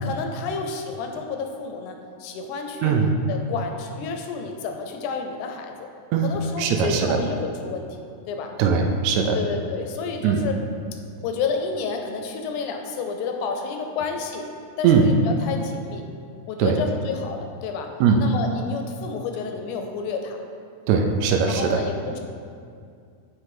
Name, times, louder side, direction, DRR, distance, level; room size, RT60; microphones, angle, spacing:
voice 1, 0.0-3.0 3.3-5.9 6.2-7.9 8.3-8.5 9.3-10.6 11.2-14.5 14.8-16.1 16.5-17.9 18.2-20.4 21.5-22.2, left 5 dB, 80° left, 4 dB, 1.9 m, -30 dB
voice 2, 2.8-3.1 6.1-6.3 6.6-7.2 8.6-9.4 10.2-10.4 14.8-15.1 16.6-16.8 18.0-18.2 20.9-21.8, right 6 dB, 80° right, 3 dB, 1.6 m, -20 dB
7.5 x 3.1 x 4.8 m, 2.3 s
omnidirectional pair, 3.7 m